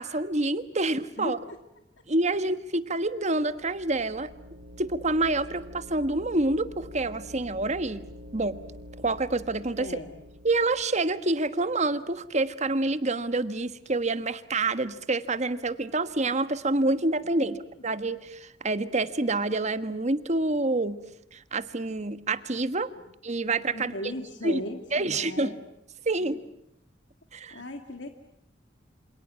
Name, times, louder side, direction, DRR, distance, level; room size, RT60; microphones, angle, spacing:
voice 1, 0.0-1.4 2.1-4.3 4.8-8.0 8.3-8.6 9.0-10.0 10.4-17.6 17.8-21.0 21.3-22.9 23.2-23.9 24.4-24.6 24.9-25.5 26.0-26.4 27.3-27.6, right 2 dB, 40° right, 12 dB, 1.4 m, -27 dB
voice 2, 1.2-1.6 2.3-2.4 9.8-10.1 17.4-17.5 23.7-25.6 26.2-26.3 27.5-28.1, left 1 dB, 80° left, 6 dB, 2.1 m, -37 dB
sound 1, 3.4-11.1, equal, 80° right, 2.9 m, -46 dB
28.0 x 26.5 x 7.5 m, 0.79 s
head